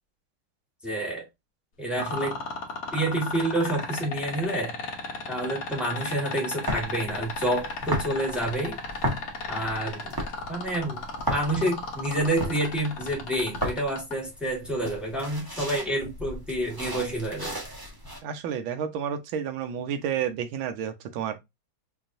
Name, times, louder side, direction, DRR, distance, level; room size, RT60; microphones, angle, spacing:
voice 1, 0.8-1.3 1.8-2.4 2.9-4.8 5.3-8.8 9.5-10.1 10.5-11.0 11.3-17.6, right 1 dB, ahead, 1.0 m, -28 dB
sound 1, 2.0-14.1 15.8-15.9, left 4 dB, 50° left, 1.2 m, -33 dB
sound 2, 6.7-18.2, equal, 25° right, 0.5 m, -35 dB
voice 2, 18.2-21.4, right 8 dB, 75° right, 1.5 m, -30 dB
4.9 x 2.7 x 2.5 m
omnidirectional pair, 2.3 m